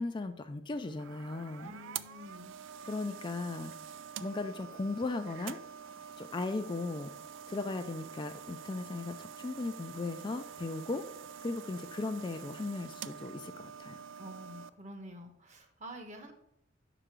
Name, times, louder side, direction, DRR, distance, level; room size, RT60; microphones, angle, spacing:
voice 1, 0.0-1.7 2.8-3.7 4.2-5.6 6.2-7.1 7.5-11.1 11.4-14.0, left 3 dB, 25° left, 8 dB, 0.4 m, -37 dB
sound 1, 0.7-14.7, right 8 dB, 70° right, 0.4 m, -46 dB
voice 2, 1.6-2.5 14.2-16.3, equal, 40° right, 5 dB, 1.1 m, -48 dB
5.6 x 5.0 x 6.1 m, 0.73 s
head